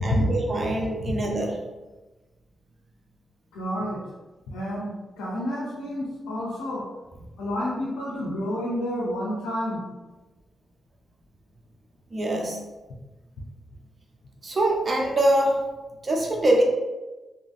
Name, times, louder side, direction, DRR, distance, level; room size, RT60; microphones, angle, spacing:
voice 1, 0.0-1.6 12.1-12.6 14.4-15.7 16.0-16.6, right 1 dB, 45° right, 0 dB, 0.6 m, -23 dB
voice 2, 3.5-4.0 4.5-6.9 7.4-9.8, equal, 85° left, -5 dB, 0.5 m, -29 dB
2.9 x 2.4 x 2.4 m, 1.1 s
supercardioid pair, 45°, 0 cm